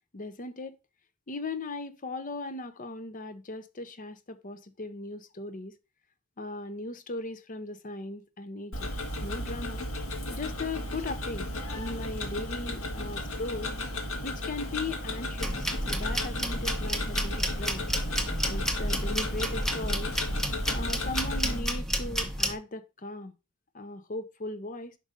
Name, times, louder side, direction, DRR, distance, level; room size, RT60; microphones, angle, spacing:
voice 1, 0.1-0.7 1.3-5.7 6.4-8.9 9.2-9.9 10.3-11.5 11.8-13.8 14.2-17.9 18.4-20.1 20.7-23.3 23.7-25.0, left 2 dB, 40° left, 0.7 m, -38 dB
Tick-tock, 8.7-21.6, left 1 dB, 80° left, 1.6 m, -35 dB
sound 1, 15.4-22.6, equal, ahead, 0.9 m, -31 dB
5.4 x 5.2 x 5.1 m
head